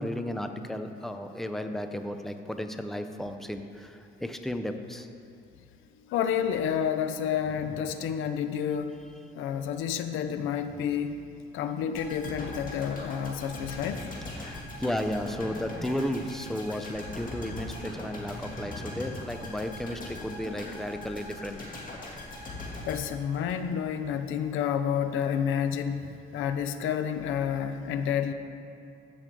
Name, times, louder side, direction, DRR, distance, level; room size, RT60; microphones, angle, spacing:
voice 1, 0.0-5.1 13.9-21.6, left 1 dB, ahead, 7 dB, 0.6 m, -34 dB
voice 2, 6.1-9.0 9.3-11.2 11.5-14.1 22.8-26.0 26.3-28.3, left 8 dB, 85° left, 9 dB, 0.6 m, -29 dB
sound 1, 11.9-23.9 24.3-24.4, left 1 dB, 45° left, 2.5 m, -40 dB
15.5 x 6.2 x 3.8 m, 2.5 s
cardioid pair, 90°, 20 cm